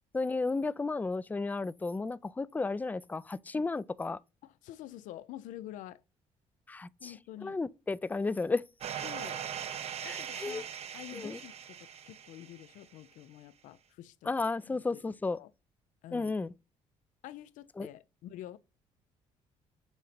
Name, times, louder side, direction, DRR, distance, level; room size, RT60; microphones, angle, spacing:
voice 1, 0.1-4.2 6.7-7.1 7.4-8.6 10.0-10.6 11.1-11.4 14.3-15.4 16.1-16.5 17.8-17.9, left 3 dB, 15° left, 0.4 m, -33 dB
voice 2, 4.4-6.0 7.0-7.6 9.0-9.4 10.0-14.3 14.7-15.5 16.0-16.4 17.2-18.6, left 13 dB, 75° left, 0.5 m, -48 dB
sound 1, 8.8-12.8, right 8 dB, 50° right, 0.7 m, -40 dB
7.2 x 2.8 x 5.1 m
supercardioid pair, 80°, 13 cm